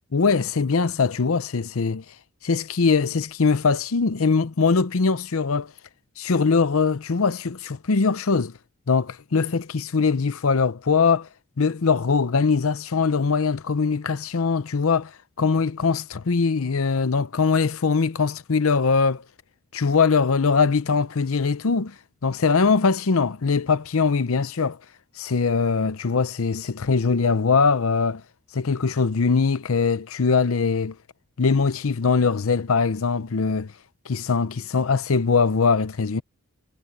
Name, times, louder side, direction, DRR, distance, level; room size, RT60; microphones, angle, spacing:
voice 1, 0.1-2.0 2.4-5.7 6.2-8.5 8.9-11.3 11.6-15.1 15.4-19.2 19.7-21.9 22.2-24.8 25.2-28.2 28.5-30.9 31.4-33.7 34.1-36.2, left 5 dB, 70° left, 0.7 m, -22 dB
head